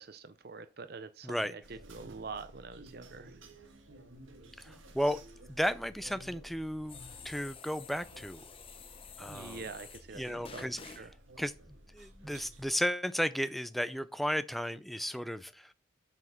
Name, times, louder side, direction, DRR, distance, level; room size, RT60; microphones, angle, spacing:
voice 1, 0.0-3.4 9.2-11.1, right 4 dB, 50° right, 0.6 m, -45 dB
sound 1, 1.6-12.7, right 1 dB, 80° right, 1.5 m, -54 dB
voice 2, 4.6-5.2 5.5-7.0 7.2-8.5 9.2-9.7 10.1-10.8 11.4-15.7, equal, ahead, 0.4 m, -34 dB
sound 2, 6.9-10.1 10.4-11.1, left 6 dB, 25° left, 0.7 m, -50 dB
7.6 x 5.8 x 6.4 m
head